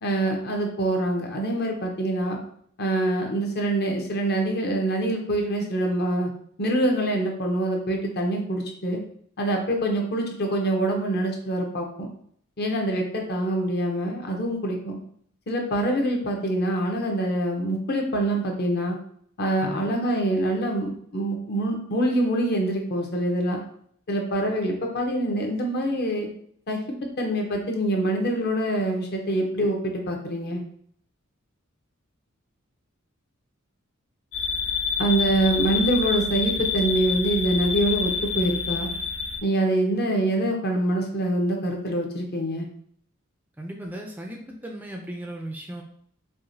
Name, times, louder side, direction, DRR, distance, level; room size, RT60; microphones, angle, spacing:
voice 1, 0.0-2.4 2.8-6.3 6.6-9.0 9.4-12.1 12.6-15.0 15.5-19.0 19.4-23.6 24.1-26.3 26.7-26.8 27.2-30.6 35.0-38.9 39.4-42.7, right 1 dB, 50° left, 2 dB, 0.8 m, -25 dB
voice 2, 19.6-19.9 43.6-45.8, right 1 dB, 10° right, 1 dB, 0.4 m, -36 dB
sound 1, 34.3-39.4, left 5 dB, 70° left, 1.2 m, -27 dB
4.8 x 2.7 x 2.7 m, 0.63 s
head